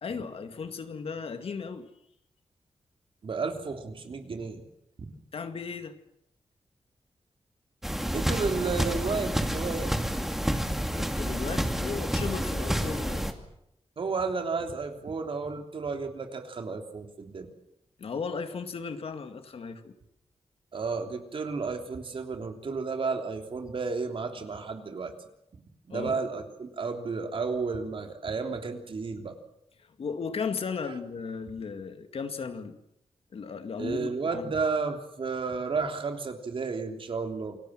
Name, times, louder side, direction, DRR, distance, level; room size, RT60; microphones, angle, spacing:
voice 1, 0.0-1.9 5.3-6.0 10.9-13.3 18.0-19.9 25.9-26.1 30.0-32.8 33.3-34.5, left 5 dB, 70° left, 8 dB, 2.2 m, -36 dB
voice 2, 3.2-4.6 5.0-5.1 8.1-9.9 14.0-17.5 20.7-25.1 25.9-29.3 33.8-37.6, right 4 dB, 60° right, 5 dB, 3.3 m, -32 dB
sound 1, 7.8-13.3, equal, 5° right, 2.5 m, -29 dB
28.0 x 19.5 x 7.7 m, 0.79 s
wide cardioid pair, 95°, 10 cm